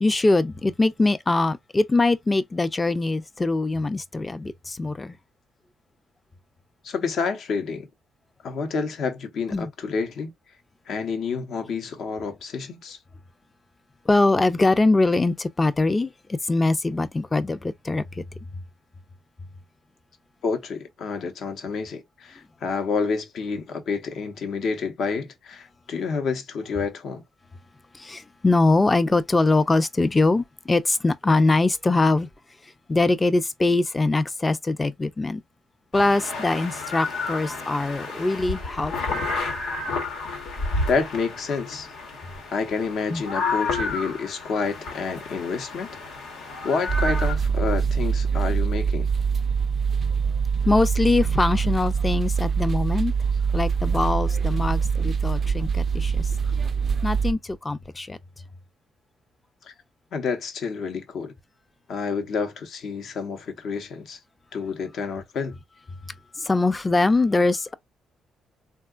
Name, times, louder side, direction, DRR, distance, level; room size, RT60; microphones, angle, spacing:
voice 1, 0.0-5.2 9.5-9.7 14.1-16.1 16.4-18.2 27.9-32.3 32.9-35.4 35.9-39.2 43.1-43.2 50.7-53.1 53.5-56.3 57.0-58.2 66.4-67.7, left 2 dB, 20° left, 0.4 m, -22 dB
voice 2, 6.8-7.9 8.4-10.3 10.9-13.0 20.4-27.2 40.9-41.9 42.5-45.9 46.6-49.1 56.4-56.5 59.6-59.7 60.1-61.3 61.9-64.2 64.5-65.6, left 5 dB, 65° left, 0.8 m, -29 dB
sound 1, 35.9-47.3, left 3 dB, 85° left, 1.1 m, -31 dB
sound 2, 46.9-57.3, right 6 dB, 45° right, 0.3 m, -24 dB
3.7 x 2.3 x 2.3 m
cardioid pair, 90°, 0 cm